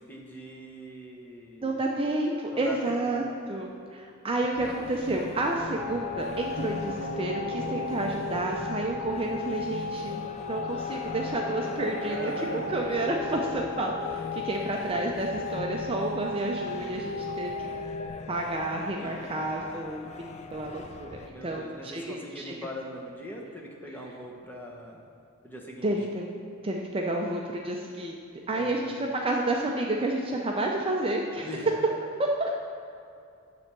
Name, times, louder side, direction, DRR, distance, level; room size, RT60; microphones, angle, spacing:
voice 1, 0.1-1.8 2.5-3.4 12.1-12.7 19.0-19.2 21.3-25.0 25.4-25.9 28.5-28.9 31.4-31.7, left 1 dB, 10° left, -2 dB, 0.9 m, -41 dB
voice 2, 1.6-10.2 10.5-17.5 18.3-21.1 21.4-22.6 25.8-26.2 26.6-28.2 28.5-32.6, right 2 dB, 25° right, 0 dB, 0.5 m, -30 dB
sound 1, 4.6-21.3, left 3 dB, 30° left, 0.4 m, -40 dB
sound 2, 5.8-18.1, left 4 dB, 80° left, 0.5 m, -36 dB
10.0 x 3.4 x 6.7 m, 2.5 s
head